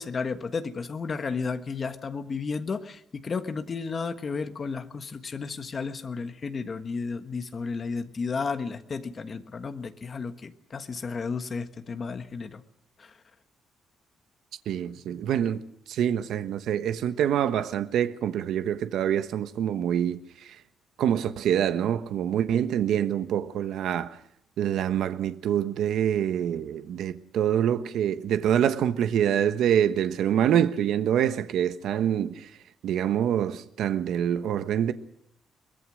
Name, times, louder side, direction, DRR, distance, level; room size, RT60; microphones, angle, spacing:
voice 1, 0.0-12.6, left 5 dB, 30° left, 1.4 m, -33 dB
voice 2, 14.7-15.6 15.9-20.6 21.0-24.2 24.6-32.5 32.8-34.9, right 9 dB, 70° right, 1.2 m, -26 dB
23.0 x 21.0 x 6.4 m
cardioid pair, 175°, 0 cm